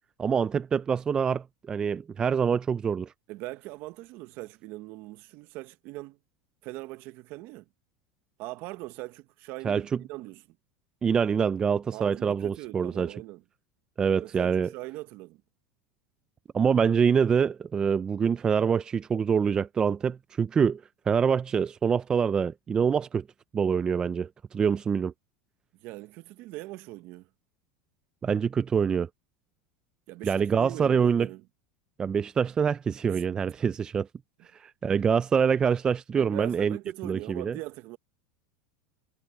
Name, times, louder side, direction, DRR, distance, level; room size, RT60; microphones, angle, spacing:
voice 1, 0.2-3.1 9.6-9.8 11.0-13.1 14.0-14.7 16.5-20.8 21.1-23.2 23.5-25.1 28.2-29.1 30.2-31.3 32.0-34.1 34.5-36.8 37.0-37.6, right 6 dB, 15° right, 0.3 m, -25 dB
voice 2, 3.3-6.2 6.6-7.7 8.4-10.6 11.9-13.4 14.2-15.4 25.8-27.3 30.1-31.4 33.1-33.2 36.2-38.0, right 20 dB, 50° right, 0.8 m, -41 dB
supercardioid pair, 150°, 4 cm